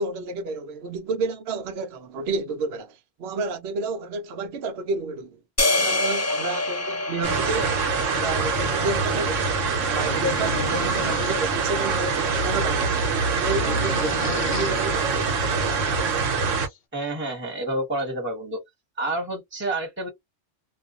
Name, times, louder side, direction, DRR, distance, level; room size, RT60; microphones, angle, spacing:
voice 1, 0.0-5.4 5.7-7.8 8.1-9.6 9.8-13.0 13.4-15.3, right 3 dB, 60° right, 0.8 m, -30 dB
sound 1, 5.6-9.9, left 2 dB, 25° left, 0.3 m, -27 dB
sound 2, 7.2-16.7, right 4 dB, 80° right, 1.1 m, -24 dB
sound 3, 9.8-11.4 11.8-12.5 12.8-14.9 16.1-16.2 16.5-16.8, left 5 dB, 55° left, 0.8 m, -36 dB
voice 2, 16.9-18.6 19.0-20.1, right 2 dB, 10° right, 0.9 m, -29 dB
2.4 x 2.2 x 2.4 m
omnidirectional pair, 1.3 m